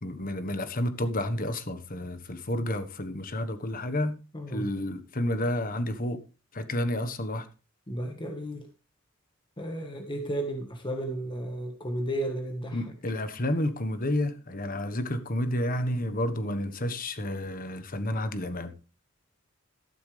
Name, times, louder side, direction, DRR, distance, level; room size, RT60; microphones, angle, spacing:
voice 1, 0.0-4.2 4.5-6.2 6.5-7.5 12.7-18.7, left 1 dB, 45° left, 1.3 m, -30 dB
voice 2, 4.3-4.7 7.9-8.7 9.6-12.8, right 1 dB, 25° left, 1.5 m, -33 dB
13.5 x 11.5 x 3.4 m
head